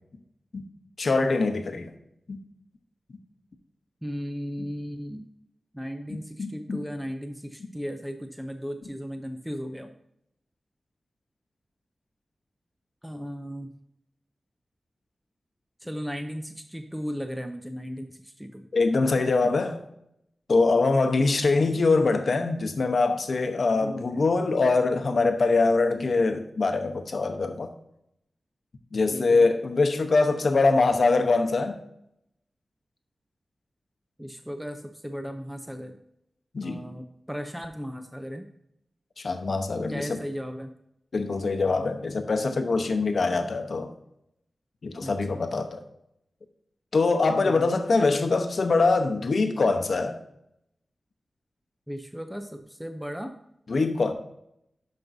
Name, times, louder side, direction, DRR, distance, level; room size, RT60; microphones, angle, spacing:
voice 1, 1.0-1.9 2.3-2.4 6.1-6.8 18.7-19.8 20.5-27.7 28.9-31.8 36.5-36.8 39.2-40.2 41.1-43.9 44.8-45.8 46.9-50.2 53.7-54.1, left 3 dB, 70° left, 6 dB, 0.9 m, -23 dB
voice 2, 4.0-5.3 5.7-9.9 13.0-13.7 15.8-18.7 23.8-24.2 29.1-29.5 34.2-36.0 36.6-38.5 39.9-40.7 45.0-45.5 47.4-47.8 51.9-53.3, equal, 5° right, 6 dB, 0.6 m, -36 dB
12.0 x 5.3 x 2.7 m, 0.78 s
wide cardioid pair, 85°, 0 cm